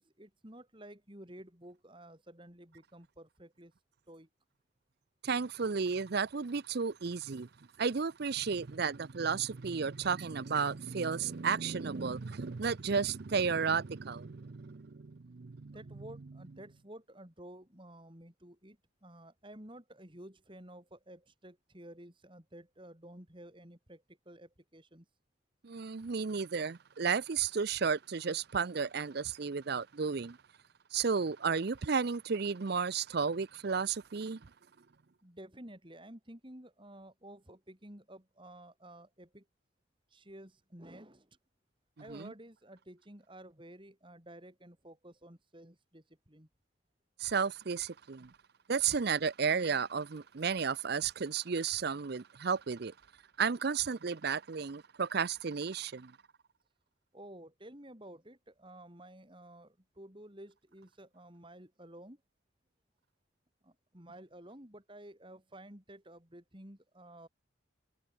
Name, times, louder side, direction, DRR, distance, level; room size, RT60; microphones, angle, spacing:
voice 1, 0.0-3.7 4.1-4.3 15.7-25.1 35.2-39.5 40.1-41.4 42.0-46.5 57.1-62.2 63.6-67.3, right 1 dB, 25° right, 3.8 m, -52 dB
voice 2, 5.2-7.5 7.8-15.8 25.6-30.4 30.9-34.5 42.1-42.3 47.2-48.3 48.7-52.9 53.4-56.1, right 5 dB, 50° right, 0.5 m, -33 dB
head